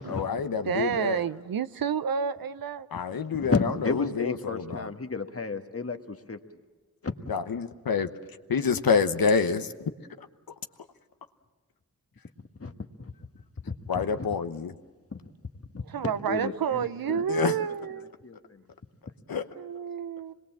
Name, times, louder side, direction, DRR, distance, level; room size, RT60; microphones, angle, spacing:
voice 1, 0.1-1.2 2.9-4.9 7.3-8.1 8.5-9.9 13.9-14.7 17.1-17.5 19.3-19.4, left 5 dB, 70° left, 1.1 m, -27 dB
voice 2, 0.7-2.9 15.9-18.1 19.6-20.3, right 8 dB, 70° right, 0.7 m, -30 dB
voice 3, 3.4-6.4 7.0-7.3 12.6-12.7 13.0-13.1 13.6-14.3 15.1-15.2 16.0-16.9 17.1-17.2 18.2-18.6, left 4 dB, 40° left, 1.6 m, -32 dB
25.0 x 21.0 x 7.3 m
cardioid pair, 40°, 37 cm